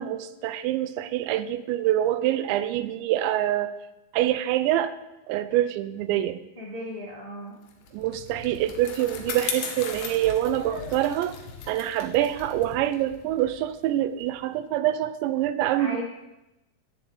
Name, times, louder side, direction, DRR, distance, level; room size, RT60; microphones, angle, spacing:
voice 1, 0.0-3.8 4.1-4.9 5.3-6.4 7.9-11.4 11.7-16.0, right 12 dB, 85° right, 13 dB, 3.0 m, -25 dB
voice 2, 6.5-7.5 15.8-16.0, left 1 dB, 20° left, -2 dB, 1.1 m, -36 dB
Bicycle, 7.7-14.4, left 6 dB, 80° left, 3.7 m, -38 dB
12.5 x 7.2 x 8.2 m, 0.97 s
omnidirectional pair, 5.1 m